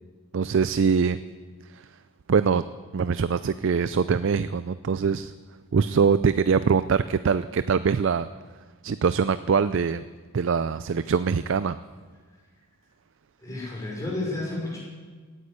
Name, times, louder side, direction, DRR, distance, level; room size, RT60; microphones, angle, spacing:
voice 1, 0.3-1.2 1.6-2.0 2.3-2.6 2.9-5.3 5.7-8.3 8.8-10.0 10.3-11.8, right 5 dB, 55° right, 13 dB, 0.4 m, -23 dB
voice 2, 13.4-14.8, left 2 dB, 15° left, -5 dB, 5.4 m, -31 dB
17.0 x 9.8 x 8.1 m, 1.5 s
head